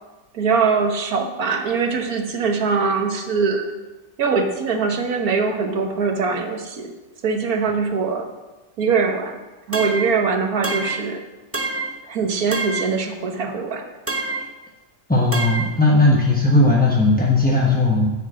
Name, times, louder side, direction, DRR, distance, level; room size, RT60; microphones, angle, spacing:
voice 1, 0.3-3.7 4.2-6.9 7.2-8.3 8.8-9.4 9.7-11.2 12.1-13.9, right 5 dB, 65° right, 5 dB, 1.6 m, -22 dB
sound 1, 9.7-10.2 10.6-11.1 11.5-12.0 12.5-13.0 14.1-14.5 15.3-15.8, right 3 dB, 15° right, 0.4 m, -26 dB
voice 2, 15.1-18.1, left 2 dB, 5° left, -3 dB, 0.8 m, -17 dB
9.5 x 6.7 x 7.5 m, 1.1 s
omnidirectional pair, 1.7 m